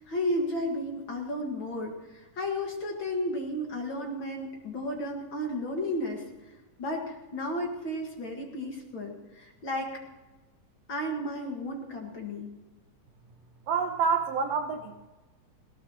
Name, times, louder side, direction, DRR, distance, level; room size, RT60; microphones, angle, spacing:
voice 1, 0.0-6.5 6.8-10.0 10.9-12.5, left 1 dB, 45° left, 1 dB, 2.0 m, -33 dB
voice 2, 13.7-15.1, right 5 dB, 70° right, 5 dB, 1.6 m, -28 dB
19.0 x 18.0 x 2.9 m, 1.1 s
omnidirectional pair, 3.7 m